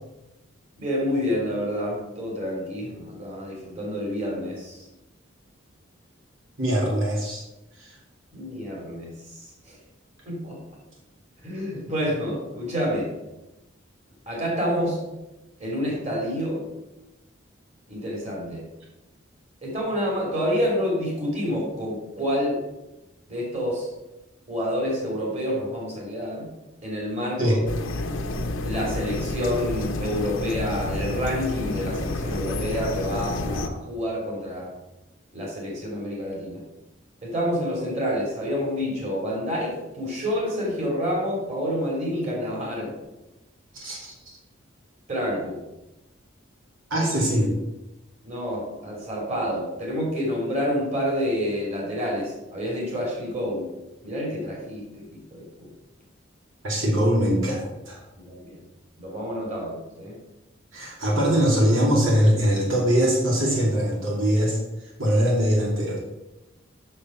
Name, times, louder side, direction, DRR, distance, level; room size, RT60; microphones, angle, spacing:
voice 1, 0.8-4.8 8.3-9.1 10.2-10.6 11.4-13.1 14.3-15.0 15.6-16.6 17.9-18.6 19.6-22.6 23.3-23.9 24.5-26.5 26.8-27.6 28.6-34.7 35.3-36.6 37.2-43.0 45.1-45.6 46.9-47.1 48.2-53.7 54.0-54.8 55.1-55.7 58.2-58.5 59.0-60.2, equal, 35° right, -3 dB, 3.2 m, -28 dB
voice 2, 6.6-7.4 7.8-7.9 27.4-27.6 43.7-44.1 46.9-47.6 56.6-58.0 60.7-64.6 65.0-66.0, equal, 85° right, -3 dB, 2.4 m, -22 dB
sound 1, 27.7-33.7, left 2 dB, 90° left, 0.8 m, -29 dB
6.8 x 6.8 x 5.8 m, 0.96 s
head